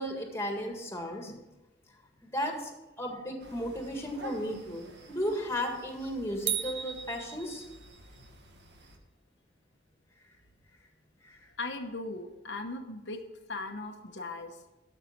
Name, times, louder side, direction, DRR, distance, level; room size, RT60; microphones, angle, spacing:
voice 1, 0.0-1.3 2.2-7.6 11.2-11.4, equal, 15° left, 3 dB, 1.8 m, -35 dB
sound 1, 3.4-9.0, right 1 dB, 65° right, 1.5 m, -51 dB
sound 2, 6.5-8.1, right 9 dB, 30° right, 0.4 m, -35 dB
voice 2, 11.6-13.2 13.5-14.6, left 2 dB, 70° left, 4 dB, 1.0 m, -38 dB
12.0 x 5.8 x 5.9 m, 1.0 s
head